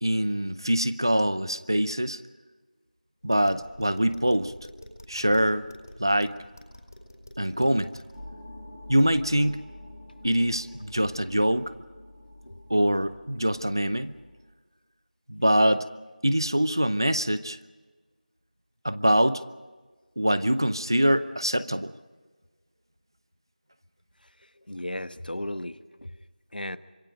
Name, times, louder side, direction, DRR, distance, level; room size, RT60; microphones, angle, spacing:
voice 1, 0.0-2.2 3.2-4.5 5.1-5.7 6.0-6.4 7.4-8.0 8.9-9.6 10.2-11.7 12.7-14.1 15.3-15.8 16.2-17.6 18.8-19.4 20.2-21.9, equal, 30° right, 14 dB, 0.6 m, -24 dB
Tap, 3.2-8.2, left 1 dB, 20° left, 4.6 m, -48 dB
sound 1, 8.1-14.4, left 1 dB, 5° right, 3.0 m, -47 dB
voice 2, 24.6-26.1 26.5-26.8, left 1 dB, 85° left, 12 dB, 1.3 m, -35 dB
26.0 x 23.0 x 5.2 m, 1.3 s
figure-of-eight pair, 180°, 5 cm